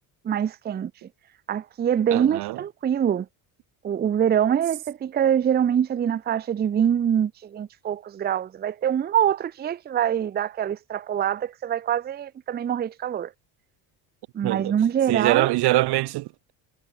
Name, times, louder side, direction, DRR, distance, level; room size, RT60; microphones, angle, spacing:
voice 1, 0.2-0.9 1.5-3.3 3.8-13.3 14.3-15.5, right 9 dB, 20° right, 0.6 m, -24 dB
voice 2, 2.1-2.6 14.4-14.7 15.1-16.5, right 19 dB, 60° right, 0.8 m, -23 dB
cardioid pair, 165°, 45 cm